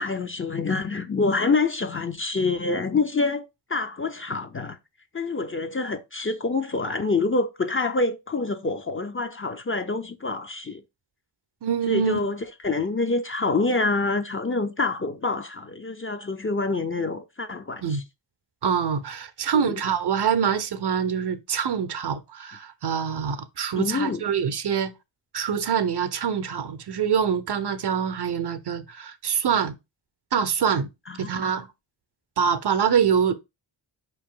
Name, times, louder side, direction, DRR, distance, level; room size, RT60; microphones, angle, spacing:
voice 1, 0.0-3.4 3.7-4.8 5.1-10.8 11.9-18.0 19.5-19.8 23.8-24.2 31.1-31.3, left 3 dB, 25° left, 0.6 m, -26 dB
voice 2, 11.6-12.2 17.8-18.0 18.6-24.9 25.3-29.7 30.3-30.9 31.2-31.7 32.4-33.3, right 7 dB, 55° right, 0.6 m, -25 dB
4.8 x 3.0 x 3.7 m
cardioid pair, 60°, 49 cm